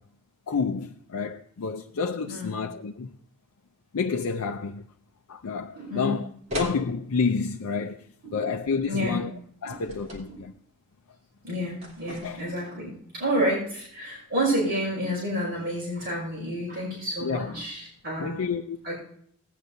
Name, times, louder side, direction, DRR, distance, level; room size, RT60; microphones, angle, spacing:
voice 1, 0.5-3.1 3.9-4.8 5.3-6.3 6.5-8.0 8.3-9.3 9.6-10.5 12.2-12.4 17.2-17.5 18.2-18.8, left 5 dB, 75° left, 0.5 m, -29 dB
voice 2, 2.3-2.6 5.7-6.2 6.5-6.6 8.2-8.4 8.9-9.2 9.6-9.8 10.2-10.4 11.4-18.6 18.8-18.9, equal, 45° right, 5.4 m, -30 dB
sound 1, 6.5-6.8 9.7-10.3 11.8-12.6, equal, 30° right, 3.0 m, -36 dB
17.5 x 9.8 x 2.6 m
head